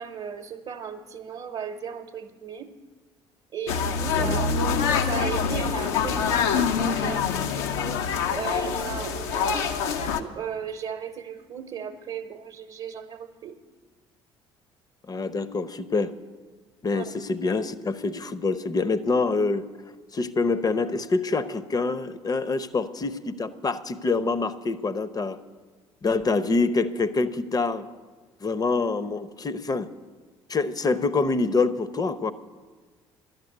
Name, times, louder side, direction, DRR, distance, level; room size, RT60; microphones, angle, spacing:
voice 1, 0.0-2.7 3.5-4.6 5.1-13.6 16.9-17.1, right 7 dB, 45° right, 5 dB, 0.8 m, -36 dB
sound 1, 3.7-10.2, left 6 dB, 70° left, 0.8 m, -25 dB
voice 2, 15.1-16.1 16.8-19.6 20.1-25.4 26.0-27.9 28.4-29.9 30.5-32.3, left 3 dB, 25° left, 15 dB, 0.7 m, -26 dB
12.0 x 8.1 x 9.4 m, 1.4 s
figure-of-eight pair, 55°, 14 cm